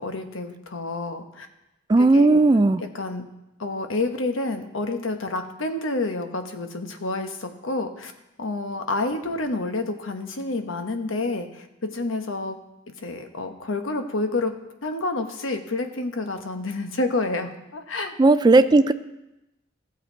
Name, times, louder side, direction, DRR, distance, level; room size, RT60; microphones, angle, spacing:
voice 1, 0.0-1.5 2.0-2.4 2.8-3.2 3.6-8.1 8.4-12.6 13.0-14.5 14.8-18.2, left 2 dB, 85° left, 6 dB, 1.1 m, -29 dB
voice 2, 1.9-2.8 18.2-18.9, right 2 dB, 20° right, 11 dB, 0.3 m, -16 dB
15.5 x 7.3 x 4.5 m, 0.93 s
head